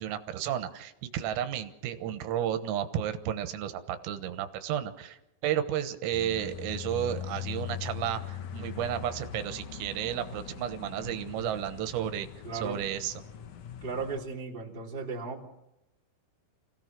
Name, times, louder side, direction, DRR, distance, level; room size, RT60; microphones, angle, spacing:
voice 1, 0.0-12.3 12.5-13.1, right 10 dB, 85° right, 10 dB, 3.9 m, -32 dB
sound 1, 6.1-14.2, left 9 dB, 80° left, 1.7 m, -41 dB
voice 2, 12.4-12.8 13.8-15.5, right 4 dB, 15° right, -3 dB, 2.6 m, -36 dB
28.5 x 17.0 x 6.1 m, 0.89 s
omnidirectional pair, 5.8 m